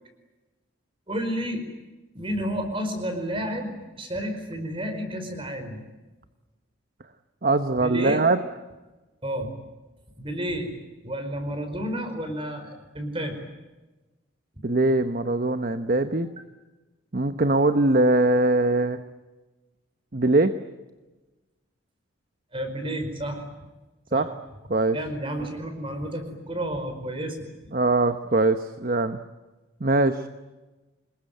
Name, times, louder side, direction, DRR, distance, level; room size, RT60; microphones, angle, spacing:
voice 1, 1.1-1.6 2.1-5.8 7.8-8.2 9.2-9.5 10.2-10.7 11.0-13.4 22.5-23.4 24.1-24.3 24.9-27.4, equal, 25° right, 7 dB, 4.9 m, -31 dB
voice 2, 7.4-8.4 14.6-16.3 17.1-19.0 20.1-20.6 24.1-24.3 24.7-25.0 27.7-29.2 29.8-30.3, right 2 dB, 45° right, 9 dB, 1.0 m, -22 dB
27.0 x 21.5 x 9.2 m, 1.1 s
head